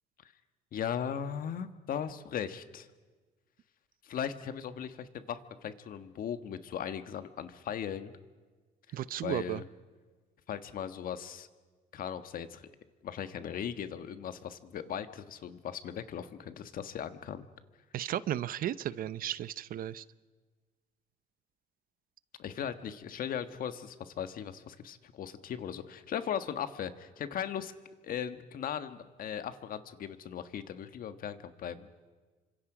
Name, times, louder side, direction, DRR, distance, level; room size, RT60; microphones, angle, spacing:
voice 1, 0.7-2.9 4.0-8.1 8.9-9.6 10.5-11.5 11.9-12.7 13.0-17.4 22.4-27.7 28.0-31.9, left 8 dB, 55° left, 11 dB, 1.4 m, -38 dB
voice 2, 8.9-9.6 17.9-20.0, right 11 dB, 60° right, 17 dB, 0.7 m, -34 dB
29.0 x 25.5 x 5.0 m, 1.4 s
cardioid pair, 110°, 17 cm